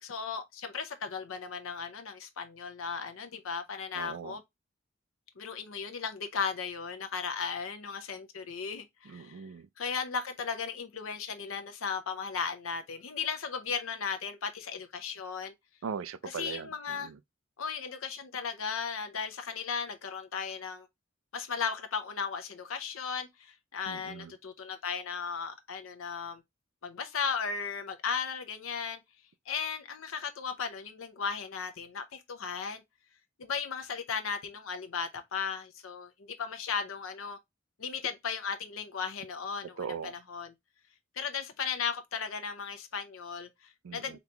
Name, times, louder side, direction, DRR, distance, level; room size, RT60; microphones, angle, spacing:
voice 1, 0.0-4.4 5.4-9.4 9.8-15.5 16.4-17.1 17.6-20.9 21.3-26.4 26.8-29.0 29.5-32.8 33.4-36.1 36.4-37.4 37.8-39.8 40.3-40.5 41.2-44.2, left 6 dB, 90° left, 0.6 m, -36 dB
voice 2, 3.9-4.4 9.0-9.7 15.8-17.2 23.9-24.3 39.8-40.2 43.8-44.2, right 6 dB, 85° right, 0.4 m, -40 dB
4.0 x 2.9 x 3.2 m
head